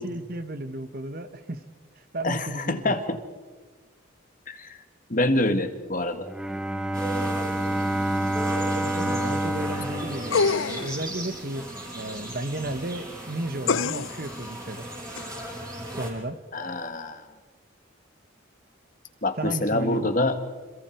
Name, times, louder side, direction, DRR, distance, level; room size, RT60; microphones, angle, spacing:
voice 1, 0.0-1.6 2.1-3.0 8.7-11.7 11.9-14.9 15.9-16.4 19.4-20.1, right 1 dB, 50° right, 10 dB, 1.4 m, -33 dB
voice 2, 2.2-3.2 4.5-4.8 5.1-6.3 16.5-17.2 19.2-20.4, left 2 dB, 40° left, 8 dB, 1.8 m, -26 dB
Bowed string instrument, 6.1-11.1, right 1 dB, 5° right, 0.8 m, -28 dB
sound 1, 6.9-16.1, right 1 dB, 20° right, 6.2 m, -36 dB
sound 2, 10.3-11.0 13.7-14.3 15.2-15.3, left 5 dB, 85° left, 0.7 m, -25 dB
29.5 x 27.0 x 4.6 m, 1.4 s
head